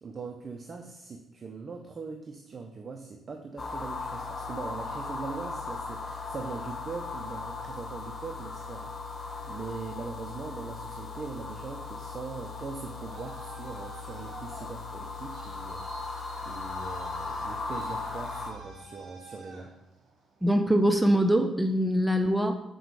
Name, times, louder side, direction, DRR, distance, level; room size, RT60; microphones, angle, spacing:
voice 1, 0.0-9.0 9.4-19.7, right 4 dB, 40° right, 4 dB, 0.7 m, -41 dB
sound 1, 3.6-18.5, left 3 dB, 40° left, 1.0 m, -38 dB
Traffic noise roadway noise, 12.8-20.4, right 4 dB, 65° right, 2.2 m, -50 dB
voice 2, 20.4-22.5, equal, 5° right, 6 dB, 0.6 m, -23 dB
6.3 x 4.6 x 4.7 m, 0.90 s
cardioid pair, 90°, 0 cm